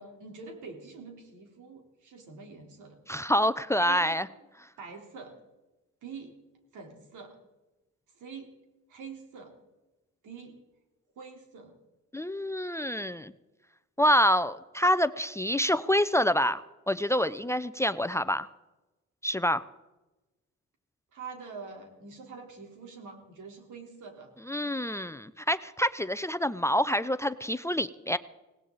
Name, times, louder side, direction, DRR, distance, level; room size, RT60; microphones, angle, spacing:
voice 1, 0.0-3.0 3.8-4.2 4.8-5.3 6.0-6.3 6.7-7.4 8.1-8.5 8.9-9.5 10.2-10.6 11.2-11.7 21.1-24.3, right 4 dB, 80° right, 2 dB, 3.9 m, -45 dB
voice 2, 3.1-4.3 12.1-13.3 14.0-16.6 16.9-18.5 19.2-19.6 24.5-28.2, equal, 10° left, 12 dB, 0.5 m, -27 dB
18.5 x 18.0 x 4.1 m, 1.1 s
cardioid pair, 90°, 30 cm